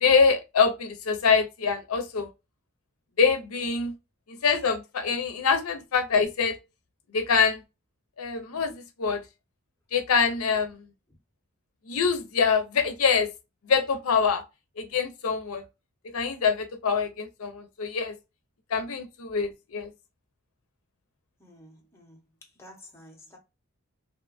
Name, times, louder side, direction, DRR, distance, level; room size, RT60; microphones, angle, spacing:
voice 1, 0.0-2.3 3.2-3.9 4.4-6.6 7.1-7.6 8.2-9.2 9.9-10.9 11.9-13.3 13.7-14.4 14.8-15.6 16.1-18.1 18.7-19.9, left 5 dB, 80° left, 0.5 m, -24 dB
voice 2, 21.4-23.4, left 1 dB, 10° left, 0.7 m, -51 dB
2.9 x 2.2 x 2.3 m
head